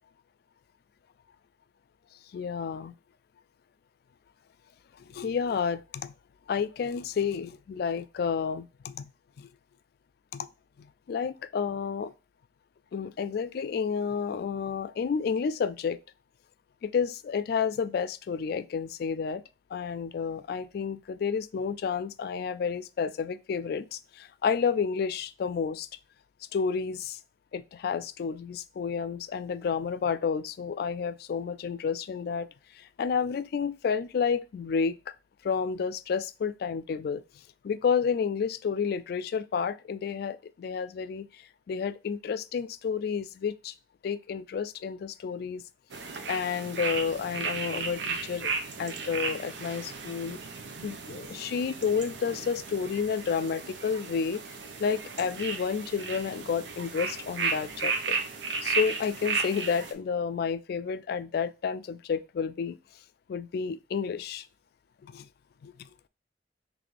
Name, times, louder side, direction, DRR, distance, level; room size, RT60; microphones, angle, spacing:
voice 1, 2.3-2.9 5.0-6.1 6.5-9.1 9.4-9.5 10.3-10.5 10.8-12.1 12.9-16.0 16.8-19.4 19.7-25.9 26.5-27.2 27.5-32.5 32.7-35.0 35.4-37.2 37.6-43.7 44.0-45.6 46.3-48.5 48.8-50.4 50.8-54.4 54.8-58.2 58.6-62.8 63.3-64.5 65.0-65.3 65.6-65.9, left 6 dB, 60° left, 0.3 m, -30 dB
sound 1, 45.9-59.9, right 4 dB, 85° right, 0.7 m, -34 dB
4.0 x 3.3 x 3.2 m
head